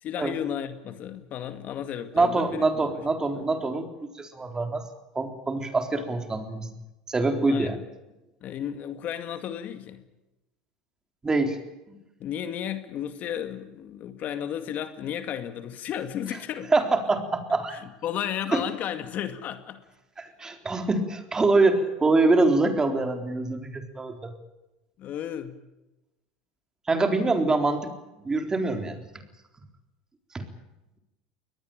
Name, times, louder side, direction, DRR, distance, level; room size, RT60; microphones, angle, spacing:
voice 1, 0.0-2.7 3.4-3.5 7.5-7.7 8.4-10.0 12.2-16.7 17.7-19.8 25.0-25.6, left 9 dB, 45° left, 9 dB, 2.2 m, -33 dB
voice 2, 2.1-3.9 4.1-4.8 5.1-6.7 7.1-7.8 11.2-11.6 11.9-12.0 16.7-17.8 18.5-18.6 20.2-24.3 26.9-27.9 28.2-29.0 30.3-30.5, right 3 dB, 15° right, 6 dB, 3.8 m, -24 dB
22.5 x 19.5 x 9.1 m, 0.98 s
supercardioid pair, 105°, 4 cm